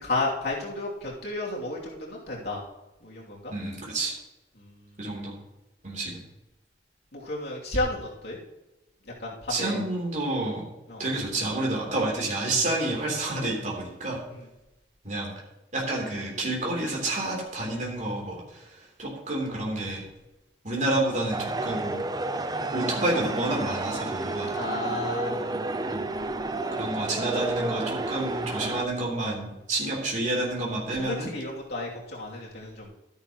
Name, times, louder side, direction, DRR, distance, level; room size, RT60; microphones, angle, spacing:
voice 1, 0.0-2.6 3.0-3.5 4.6-5.2 7.1-8.4 9.2-9.8 10.9-11.0 14.3-14.5 24.5-25.5 30.9-32.9, left 2 dB, 65° left, -4 dB, 2.9 m, -33 dB
voice 2, 3.5-4.1 5.0-5.3 5.8-6.2 9.5-10.6 11.0-14.2 15.0-15.3 15.7-18.7 19.0-20.0 20.6-22.0 22.7-24.5 25.9-26.1 26.8-31.3, right 2 dB, 45° right, -2 dB, 3.4 m, -29 dB
sound 1, 21.3-28.8, right 2 dB, 20° right, 0.6 m, -31 dB
13.0 x 10.0 x 3.1 m, 0.96 s
head